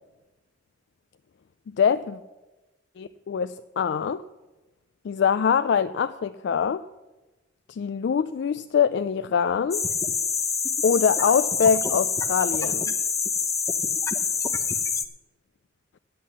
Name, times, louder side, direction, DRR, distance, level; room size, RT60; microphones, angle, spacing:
voice 1, 1.8-2.2 3.0-4.2 5.0-6.8 7.7-9.8 10.8-12.9, left 7 dB, 60° left, 12 dB, 0.3 m, -24 dB
sound 1, 9.7-15.0, left 5 dB, 15° left, 0.6 m, -26 dB
10.5 x 8.5 x 7.3 m, 1.1 s
head